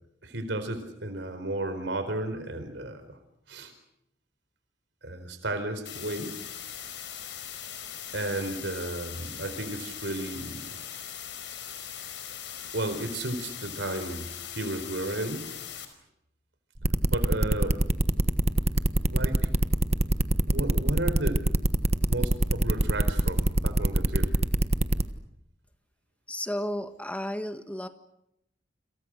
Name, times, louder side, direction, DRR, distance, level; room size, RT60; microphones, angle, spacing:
voice 1, 0.2-3.2 3.5-3.7 5.0-6.3 8.1-10.8 12.7-15.5 17.1-17.8 19.1-19.5 20.5-21.5 22.1-24.3, right 1 dB, 75° right, 8 dB, 4.4 m, -33 dB
sound 1, 5.9-15.9, left 9 dB, 75° left, 5.0 m, -40 dB
sound 2, 16.8-25.0, right 1 dB, 35° right, 1.3 m, -23 dB
voice 2, 26.3-27.9, left 1 dB, 10° left, 8 dB, 1.5 m, -33 dB
29.0 x 27.5 x 6.5 m, 0.79 s
head